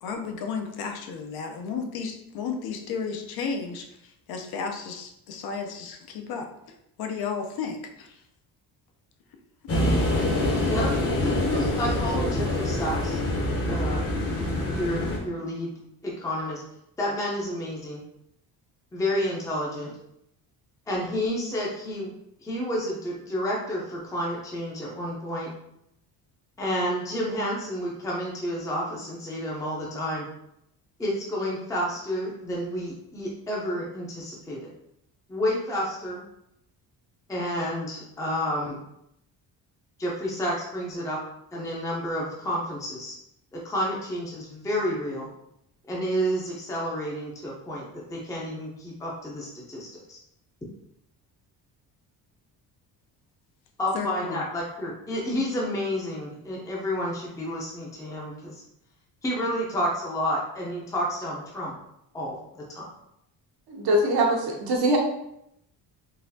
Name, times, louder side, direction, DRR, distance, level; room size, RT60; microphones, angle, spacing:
voice 1, 0.0-6.5 7.0-8.2 53.9-54.4, left 5 dB, 70° left, 4 dB, 0.6 m, -33 dB
sound 1, 9.7-15.2, left 1 dB, 40° left, 0.8 m, -25 dB
voice 2, 11.2-13.2 13.7-15.7 16.0-16.6 17.0-18.0 18.9-19.9 20.9-22.1 22.4-25.5 26.6-30.3 31.0-34.6 35.3-36.2 37.3-38.8 40.0-41.2 41.5-43.1 43.5-45.3 45.9-47.8 48.1-50.2 53.8-58.6 59.2-61.7 62.1-62.9, equal, 10° left, -4 dB, 0.5 m, -30 dB
voice 3, 63.7-65.0, right 1 dB, 75° right, 0 dB, 1.0 m, -22 dB
3.9 x 2.5 x 2.7 m, 0.78 s
cardioid pair, 150°, 39 cm